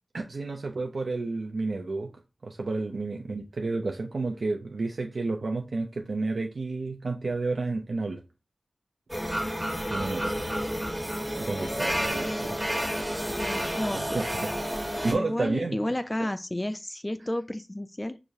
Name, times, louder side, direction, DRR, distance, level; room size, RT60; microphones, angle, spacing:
voice 1, 0.1-2.1 2.4-8.2 9.9-10.4 11.4-12.9 13.9-14.5 15.0-15.8, right 3 dB, 85° right, 0.4 m, -31 dB
sound 1, 9.1-15.1, equal, 15° right, 1.1 m, -30 dB
voice 2, 13.3-14.0 15.1-18.2, left 1 dB, 25° left, 0.3 m, -32 dB
4.6 x 2.5 x 2.6 m
cardioid pair, 40°, 0 cm